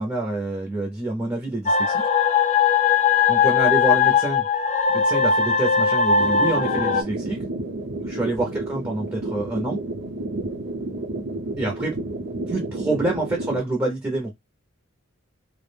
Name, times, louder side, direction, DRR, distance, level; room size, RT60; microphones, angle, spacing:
voice 1, 0.0-2.0 3.3-4.5 4.9-7.4 8.0-9.8 11.6-12.0 12.5-14.3, right 2 dB, 15° right, 0.6 m, -27 dB
sound 1, 1.7-7.0, left 6 dB, 35° left, 0.3 m, -19 dB
sound 2, 6.2-13.6, right 2 dB, 55° right, 0.7 m, -31 dB
2.4 x 2.0 x 3.2 m
head